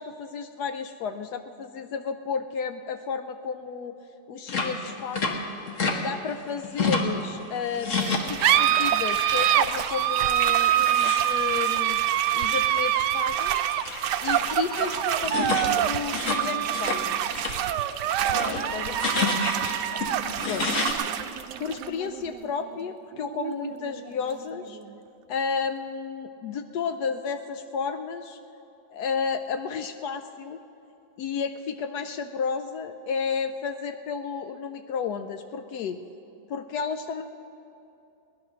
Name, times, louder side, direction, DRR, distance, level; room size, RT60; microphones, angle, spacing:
voice 1, 0.0-4.0 4.3-5.4 5.9-12.0 12.3-13.6 14.2-17.2 18.7-19.3 20.5-20.7 21.6-24.8 25.3-28.4 28.9-30.6 31.2-36.0 36.5-37.2, left 6 dB, 70° left, 8 dB, 1.1 m, -32 dB
sound 1, 4.5-6.0 6.3-7.2 7.6-8.7 9.0-9.4 9.8-17.0 17.3-17.6 18.0-20.9, left 4 dB, 50° left, 1.4 m, -31 dB
sound 2, 8.0-25.0, right 11 dB, 80° right, 1.2 m, -26 dB
19.0 x 10.5 x 6.3 m, 2.8 s
omnidirectional pair, 1.9 m